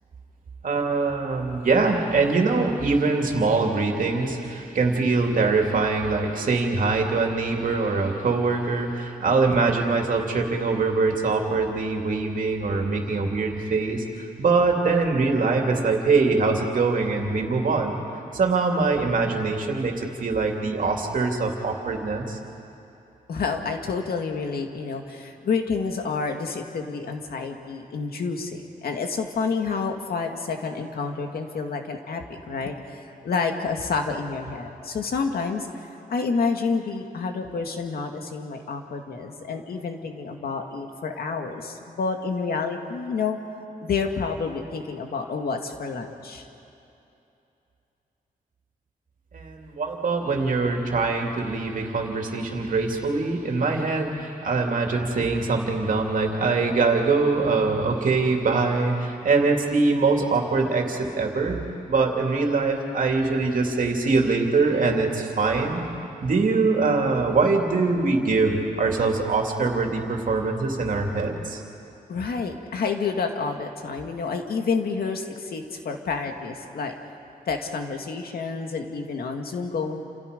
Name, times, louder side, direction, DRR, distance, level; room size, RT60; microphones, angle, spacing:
voice 1, 0.6-18.0 18.3-22.4 49.3-61.6 61.9-65.9 66.2-71.6, right 3 dB, 60° right, 2 dB, 2.9 m, -23 dB
voice 2, 23.3-43.4 43.8-46.5 72.1-76.9 77.5-80.0, left 4 dB, 85° left, 4 dB, 2.1 m, -29 dB
28.5 x 28.5 x 5.3 m, 2.8 s
wide cardioid pair, 135°, 15 cm